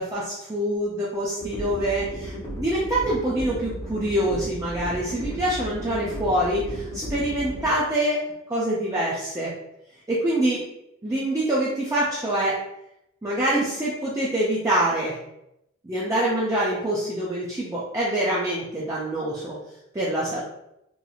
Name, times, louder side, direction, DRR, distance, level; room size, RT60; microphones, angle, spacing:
voice 1, 0.0-8.2 8.5-9.5 10.1-10.6 11.0-12.6 13.2-15.2 15.8-19.6 19.9-20.4, right 1 dB, 15° right, -7 dB, 0.4 m, -25 dB
sound 1, 1.4-7.7, equal, 25° left, 0.7 m, -35 dB
3.0 x 2.4 x 2.4 m, 0.83 s
head